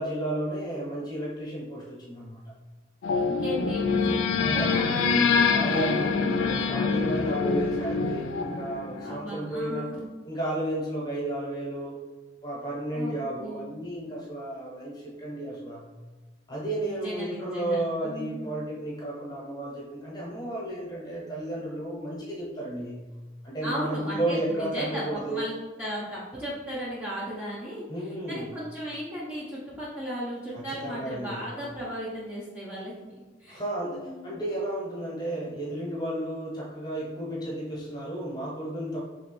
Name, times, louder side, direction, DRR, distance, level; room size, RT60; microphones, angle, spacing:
voice 1, 0.0-2.4 4.4-4.8 5.5-9.9 10.2-12.0 12.4-15.9 16.5-23.0 23.4-25.4 27.9-28.5 30.5-31.4 33.5-39.0, right 1 dB, 20° left, -5 dB, 0.8 m, -33 dB
sound 1, 3.0-9.2, left 5 dB, 80° left, 0.3 m, -25 dB
voice 2, 3.1-4.2 4.5-6.2 9.0-10.1 12.9-13.6 16.9-18.5 23.6-25.5 25.8-27.8 28.3-32.9 33.4-34.3, equal, 10° right, -9 dB, 0.5 m, -36 dB
3.0 x 2.9 x 3.0 m, 1.2 s
head